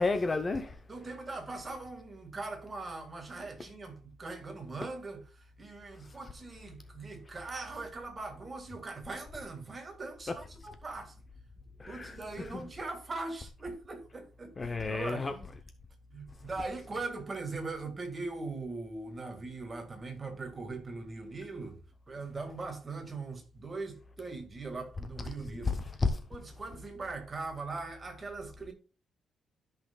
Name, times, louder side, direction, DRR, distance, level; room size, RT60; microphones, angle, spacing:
voice 1, 0.0-0.8 6.0-6.2 10.3-10.4 11.8-12.6 14.6-15.3 25.6-26.2, left 3 dB, 20° left, 0.6 m, -32 dB
voice 2, 0.9-11.2 11.9-15.4 16.1-21.8 22.1-25.8 26.3-28.7, right 3 dB, 20° right, 1.8 m, -40 dB
13.5 x 5.7 x 2.2 m
cardioid pair, 170°, 0 cm